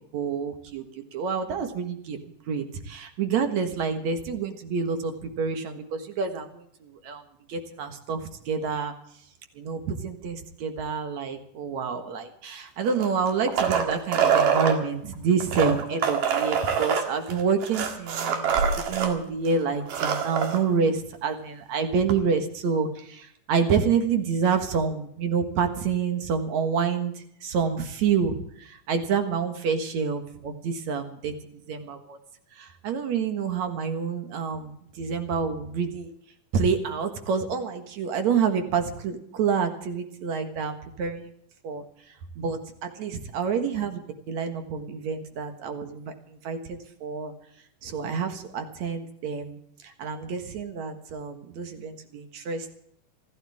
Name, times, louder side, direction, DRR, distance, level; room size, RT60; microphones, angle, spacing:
voice 1, 0.1-0.8 1.1-2.2 2.5-7.2 7.5-8.2 8.5-8.9 9.6-27.1 27.4-31.3 31.7-32.2 32.6-36.1 36.5-41.3 41.6-41.8 42.4-44.0 44.3-46.1 46.4-47.3 47.8-49.6 49.8-52.7, right 6 dB, 60° right, 6 dB, 2.7 m, -28 dB
sound 1, 12.8-14.8 15.4-19.1 19.5-19.6 19.8-20.6 22.1-22.2, right 7 dB, 90° right, 3.5 m, -25 dB
27.0 x 12.0 x 3.6 m, 0.70 s
omnidirectional pair, 3.7 m